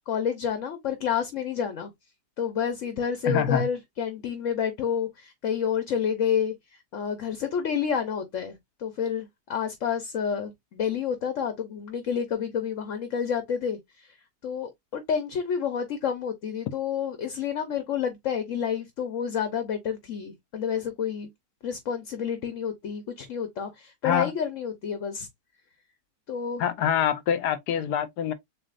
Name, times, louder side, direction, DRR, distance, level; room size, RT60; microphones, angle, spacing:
voice 1, 0.1-1.9 2.4-6.5 6.9-14.2 14.4-21.3 21.6-25.3 26.3-26.6, left 7 dB, 55° left, 1.1 m, -29 dB
voice 2, 3.2-3.7 24.0-24.3 26.6-28.3, left 8 dB, 75° left, 1.3 m, -25 dB
7.0 x 2.9 x 2.5 m
omnidirectional pair, 1.8 m